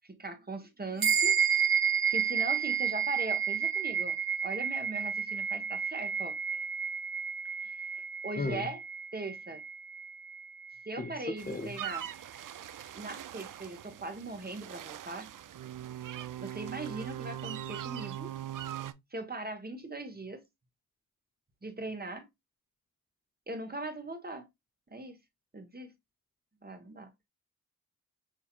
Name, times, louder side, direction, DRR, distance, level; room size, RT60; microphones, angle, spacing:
voice 1, 0.0-1.4 2.1-4.2 4.4-6.4 7.6-8.8 9.1-9.6 10.9-12.1 12.9-15.3 16.4-18.3 19.1-20.4 21.6-22.2 23.5-24.5 24.9-25.2 25.5-25.9 26.6-27.1, right 2 dB, 25° right, 1.3 m, -40 dB
sound 1, 1.0-10.7, right 7 dB, 75° right, 1.7 m, -31 dB
voice 2, 11.0-11.7, left 3 dB, 25° left, 0.6 m, -35 dB
sound 2, 11.4-18.9, right 11 dB, 60° right, 0.5 m, -41 dB
6.5 x 2.7 x 2.4 m
cardioid pair, 50°, 36 cm